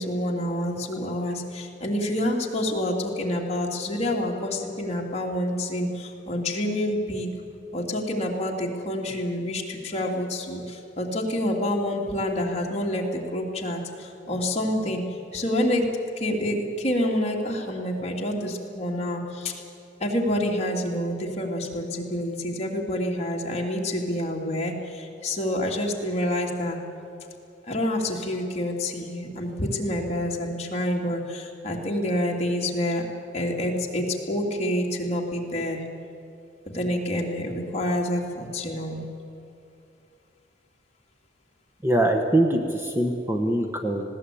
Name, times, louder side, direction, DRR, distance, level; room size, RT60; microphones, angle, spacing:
voice 1, 0.0-7.3 7.7-15.0 15.3-15.9 16.2-19.6 20.0-26.8 27.7-33.0 33.3-35.8 36.7-39.0, left 1 dB, 35° left, -1 dB, 2.5 m, -27 dB
voice 2, 41.8-44.0, right 1 dB, 10° right, 3 dB, 1.1 m, -23 dB
20.0 x 17.0 x 8.5 m, 2.6 s
head